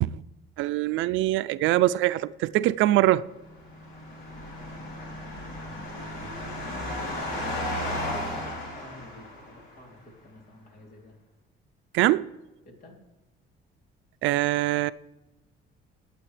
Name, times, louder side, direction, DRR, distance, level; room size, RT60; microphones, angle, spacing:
voice 1, 0.6-3.3 11.9-12.3 14.2-14.9, right 15 dB, 80° right, 0.4 m, -23 dB
sound 1, 3.4-9.7, left 1 dB, 80° left, 3.6 m, -34 dB
voice 2, 5.6-6.4 6.7-11.2 12.6-13.0, left 1 dB, 50° left, 3.1 m, -48 dB
21.0 x 8.7 x 3.3 m
cardioid pair, 150°, 20 cm